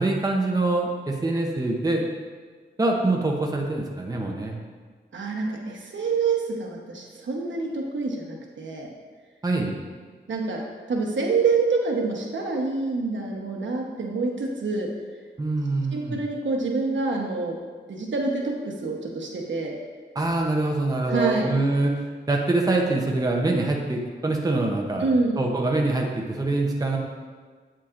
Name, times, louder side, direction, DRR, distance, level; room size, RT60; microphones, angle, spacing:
voice 1, 0.0-2.1 2.8-4.6 9.4-9.7 15.4-16.2 20.1-21.9 22.3-25.1 25.4-27.0, right 2 dB, 20° right, 0 dB, 0.7 m, -24 dB
voice 2, 5.1-8.9 10.3-10.6 10.9-14.9 15.9-17.6 17.9-19.7 21.1-21.5 25.0-25.4, right 4 dB, 80° right, 0 dB, 1.1 m, -26 dB
8.5 x 7.4 x 2.5 m, 1.5 s
wide cardioid pair, 150°, 19 cm